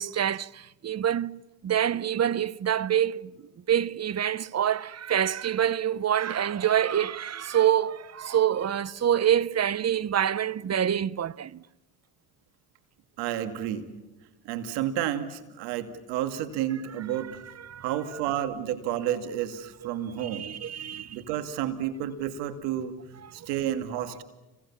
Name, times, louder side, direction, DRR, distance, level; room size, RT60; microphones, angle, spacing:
voice 1, 0.0-3.3 3.7-11.6 17.6-17.8 20.2-21.2, right 10 dB, 40° right, 0.9 m, -26 dB
voice 2, 13.2-13.9 14.4-17.4 17.8-20.5 21.1-22.9 23.3-24.2, right 11 dB, 90° right, 2.4 m, -31 dB
30.0 x 23.0 x 7.2 m
supercardioid pair, 70°, 40 cm